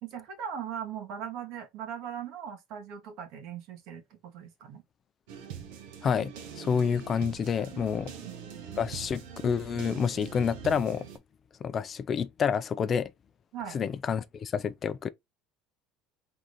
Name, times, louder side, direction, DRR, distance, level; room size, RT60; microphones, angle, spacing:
voice 1, 0.0-4.8 8.2-8.3 13.5-13.8, right 8 dB, 65° right, 1.6 m, -39 dB
sound 1, 5.3-11.2, right 7 dB, 85° right, 1.1 m, -43 dB
voice 2, 6.0-8.1 8.8-11.1 11.6-13.1 13.7-15.1, left 7 dB, 30° left, 0.4 m, -29 dB
4.0 x 3.7 x 3.1 m
cardioid pair, 130°, 0 cm